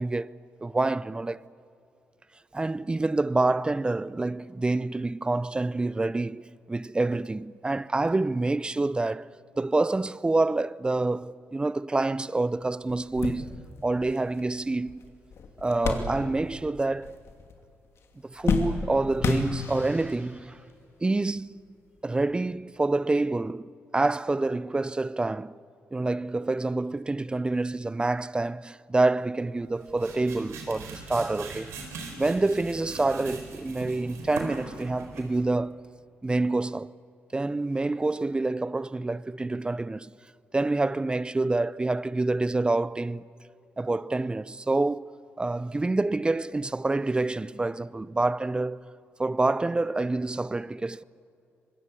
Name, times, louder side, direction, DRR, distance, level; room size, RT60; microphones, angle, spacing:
voice 1, 0.0-1.4 2.5-9.3 9.6-13.5 13.8-15.0 15.6-17.2 18.2-20.6 21.0-21.6 22.0-25.5 25.9-31.7 32.2-35.8 36.2-36.9 37.3-40.1 40.5-43.2 43.8-48.9 49.2-51.0, right 2 dB, 20° right, 0.5 m, -27 dB
sound 1, 12.4-12.5 12.9-16.7 16.9-17.7 18.0-20.0 20.8-20.9 22.2-22.3, left 5 dB, 65° left, 2.6 m, -31 dB
sound 2, 19.6-21.1, left 4 dB, 85° left, 7.5 m, -54 dB
sound 3, 29.6-35.4, right 3 dB, 85° right, 4.1 m, -41 dB
25.0 x 21.0 x 8.5 m
cardioid pair, 70°, 5 cm